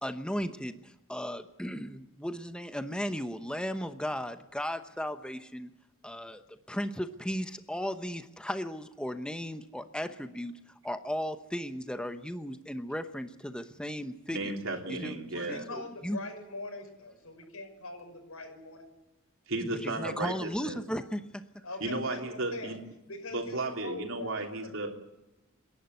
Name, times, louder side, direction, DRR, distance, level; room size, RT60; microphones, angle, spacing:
voice 1, 0.0-5.7 6.0-10.5 10.8-14.6 14.9-15.1 15.4-16.2 19.6-21.4, equal, 5° left, 9 dB, 0.9 m, -36 dB
voice 2, 14.3-15.7 19.5-20.8 21.8-22.8 23.3-24.9, right 2 dB, 65° right, 1 dB, 3.4 m, -34 dB
voice 3, 15.3-18.9 21.6-22.8 23.1-24.7, left 2 dB, 85° left, 2 dB, 6.1 m, -42 dB
28.5 x 11.5 x 9.6 m, 0.96 s
head